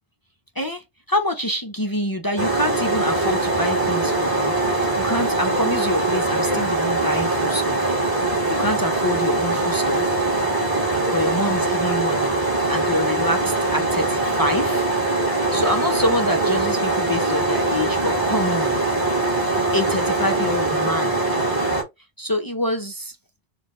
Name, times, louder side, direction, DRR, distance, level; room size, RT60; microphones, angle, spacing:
voice 1, 0.6-7.9 8.5-10.1 11.1-12.4 12.7-14.9 15.5-18.8 19.7-21.2 22.2-23.2, left 1 dB, 30° left, 0.4 m, -26 dB
sound 1, 2.4-21.8, right 2 dB, 20° right, 2.5 m, -22 dB
6.2 x 2.5 x 3.0 m
omnidirectional pair, 1.1 m